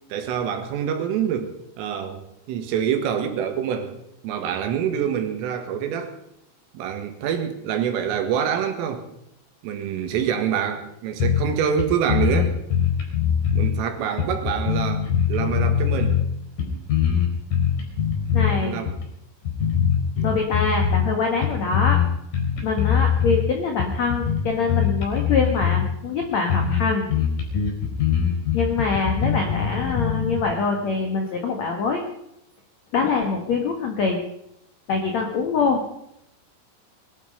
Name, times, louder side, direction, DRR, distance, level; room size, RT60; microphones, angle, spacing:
voice 1, 0.1-3.9 4.2-6.1 6.7-9.0 9.6-12.6 13.5-16.2 18.5-18.9 20.2-20.3, right 8 dB, 90° right, 6 dB, 4.4 m, -26 dB
sound 1, 11.2-11.5 11.8-11.9 12.1-13.7 14.2-16.3 16.6-18.5 18.9-19.0 19.4-21.1 21.4-22.1 22.3-23.4 23.8-25.9 26.2-26.3 26.5-26.8 27.1-30.4, left 8 dB, 45° left, 5.9 m, -22 dB
voice 2, 18.3-18.8 20.2-22.0 22.6-27.1 28.5-32.0 32.9-34.2 34.9-35.9, left 4 dB, 70° left, 2 dB, 1.6 m, -24 dB
21.0 x 12.0 x 5.4 m, 0.80 s
omnidirectional pair, 5.7 m